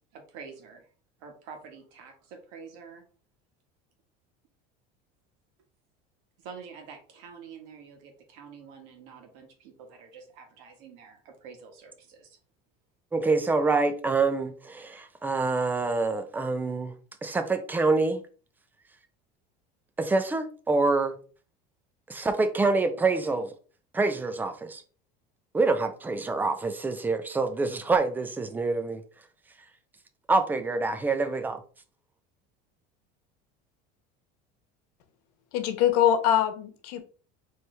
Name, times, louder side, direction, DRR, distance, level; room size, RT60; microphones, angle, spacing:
voice 1, 0.1-0.9 1.2-3.0 6.4-12.3, right 6 dB, 70° right, 1.5 m, -47 dB
voice 2, 13.1-16.9 17.2-18.2 20.0-21.2 22.1-23.5 23.9-24.8 25.5-29.0 30.3-31.6, right 3 dB, 10° right, 0.5 m, -26 dB
voice 3, 35.5-37.0, left 10 dB, 90° left, 1.0 m, -23 dB
4.4 x 3.2 x 3.3 m
cardioid pair, 145°, 20 cm